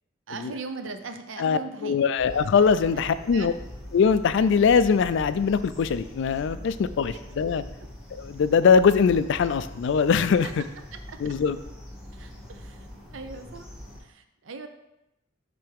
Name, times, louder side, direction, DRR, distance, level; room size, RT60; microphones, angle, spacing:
voice 1, 0.3-2.0 2.9-3.0 3.3-3.5 10.9-11.2 12.1-12.9 13.1-13.7 14.0-14.7, right 4 dB, 65° right, 7 dB, 0.6 m, -39 dB
voice 2, 1.4-3.5 3.9-7.6 8.1-10.5 11.2-11.6, left 6 dB, 60° left, 14 dB, 0.3 m, -22 dB
sound 1, 2.2-14.0, left 1 dB, 5° right, 1.2 m, -42 dB
10.0 x 3.4 x 3.5 m, 0.91 s
head